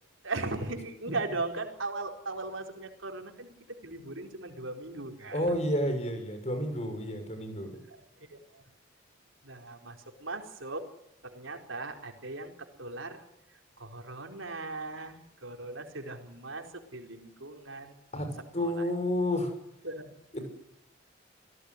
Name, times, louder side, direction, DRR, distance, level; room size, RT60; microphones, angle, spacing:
voice 1, 0.2-3.5 3.8-5.5 7.9-8.0 8.3-8.6 9.4-10.8 11.2-13.2 13.5-18.0 18.6-18.9 19.8-20.2, right 3 dB, 70° right, 4 dB, 4.3 m, -38 dB
voice 2, 5.3-7.7 18.1-19.5 20.3-20.4, left 1 dB, 35° left, 6 dB, 6.5 m, -30 dB
28.5 x 17.5 x 9.9 m, 0.77 s
head